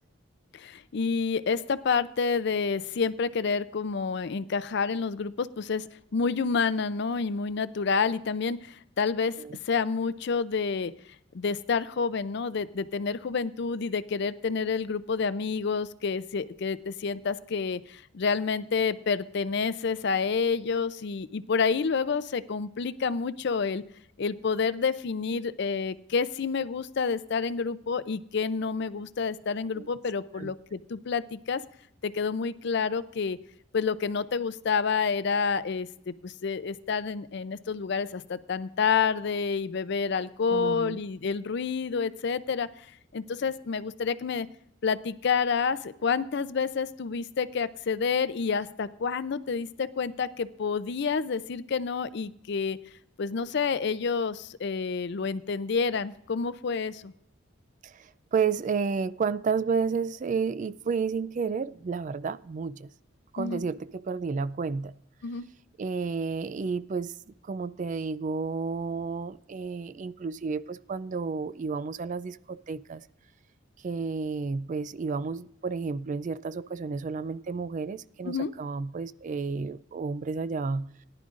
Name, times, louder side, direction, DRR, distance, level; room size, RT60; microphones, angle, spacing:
voice 1, 0.5-9.4 9.7-10.9 11.3-23.8 24.2-31.6 32.0-33.4 33.7-42.7 43.1-44.5 44.8-52.8 53.2-57.1 63.4-63.6 65.2-65.5 78.2-78.5, left 5 dB, 60° left, 15 dB, 0.5 m, -29 dB
voice 2, 40.5-41.0 57.8-62.9 63.3-64.9 65.8-67.1 67.4-73.1 73.8-80.9, right 5 dB, 40° right, 16 dB, 0.3 m, -31 dB
18.0 x 11.0 x 2.5 m, 0.73 s
head